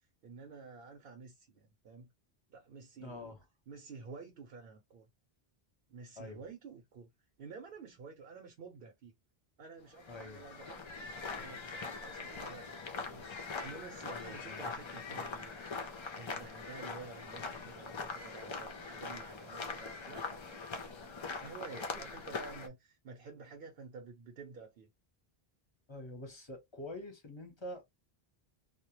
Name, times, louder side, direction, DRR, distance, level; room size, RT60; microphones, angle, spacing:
voice 1, 0.0-2.1 2.5-3.3 3.7-5.1 5.9-7.1 7.4-9.1 9.6-10.8 11.3-12.7 13.0-13.3 13.6-15.6 16.2-20.9 21.4-24.9, right 4 dB, 65° right, 0.8 m, -51 dB
voice 2, 3.0-3.4 6.2-6.4 10.1-10.5 14.1-14.6 25.9-27.8, left 1 dB, 30° left, 0.7 m, -46 dB
sound 1, 9.9-22.7, left 4 dB, 45° left, 0.3 m, -42 dB
2.1 x 2.1 x 2.9 m
omnidirectional pair, 1.0 m